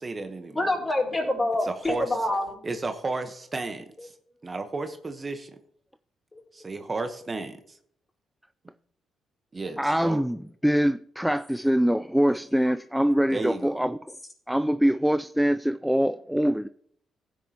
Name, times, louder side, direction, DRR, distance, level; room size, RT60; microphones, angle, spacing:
voice 1, 0.0-0.7 1.6-2.2 2.6-4.1 4.4-5.5 6.5-7.8 9.5-10.2 13.3-13.8, right 3 dB, 35° right, 1.1 m, -33 dB
voice 2, 0.6-2.6 6.3-6.4, left 1 dB, 25° left, 4.3 m, -26 dB
voice 3, 9.8-14.0 14.5-16.7, equal, 5° right, 0.4 m, -24 dB
16.0 x 9.4 x 2.9 m
hypercardioid pair, 50°, 0 cm